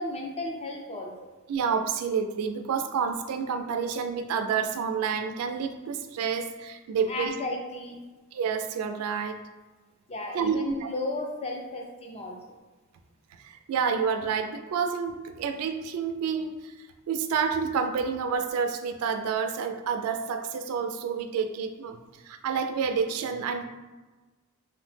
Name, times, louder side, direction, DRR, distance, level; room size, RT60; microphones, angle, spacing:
voice 1, 0.0-1.3 7.1-8.0 10.1-12.4, left 2 dB, 30° left, 1 dB, 0.4 m, -34 dB
voice 2, 1.5-7.3 8.3-9.4 10.3-10.9 13.4-22.0 22.2-23.7, right 6 dB, 75° right, 6 dB, 0.3 m, -29 dB
3.0 x 2.0 x 3.2 m, 1.2 s
head